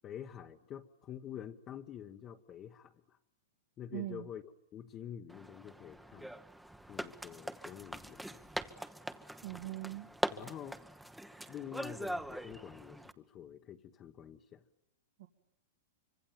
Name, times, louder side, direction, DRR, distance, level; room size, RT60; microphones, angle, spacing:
voice 1, 0.0-3.2 3.8-4.4 4.7-6.3 6.9-8.5 10.3-10.8 11.5-14.6, left 9 dB, 30° left, 3 dB, 1.1 m, -47 dB
voice 2, 3.9-4.3 9.4-10.1 15.2-15.3, right 16 dB, 70° right, 4 dB, 2.3 m, -41 dB
sound 1, 5.3-13.1, right 1 dB, 5° right, 1.0 m, -42 dB
25.0 x 25.0 x 9.0 m, 0.78 s
hypercardioid pair, 135°, 0 cm